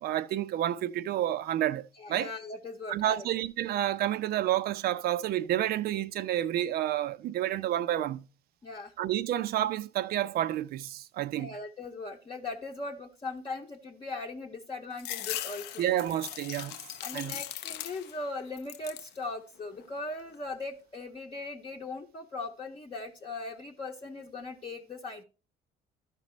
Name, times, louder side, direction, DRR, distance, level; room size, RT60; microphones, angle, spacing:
voice 1, 0.0-2.3 2.9-8.2 9.0-11.5 15.8-16.8 17.1-17.4, right 12 dB, 65° right, 0.5 m, -30 dB
voice 2, 2.0-3.2 8.6-8.9 11.3-15.8 17.0-25.2, left 3 dB, 30° left, 0.8 m, -39 dB
sound 1, 15.0-18.3 18.6-19.2 19.6-20.3, left 12 dB, 75° left, 0.5 m, -39 dB
12.0 x 5.3 x 3.1 m
cardioid pair, 110°, 17 cm